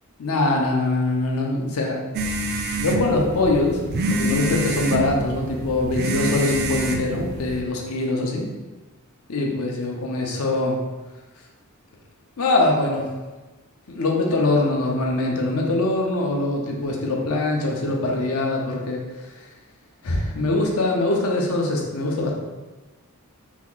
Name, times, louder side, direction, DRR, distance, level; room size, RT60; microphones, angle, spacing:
voice 1, 0.2-2.0 2.8-8.4 9.3-10.8 12.4-13.1 13.9-19.0 20.0-22.3, left 2 dB, 70° left, -1 dB, 0.6 m, -23 dB
sound 1, 2.1-7.6, right 1 dB, 45° right, 0.3 m, -26 dB
2.9 x 2.3 x 3.7 m, 1.2 s
head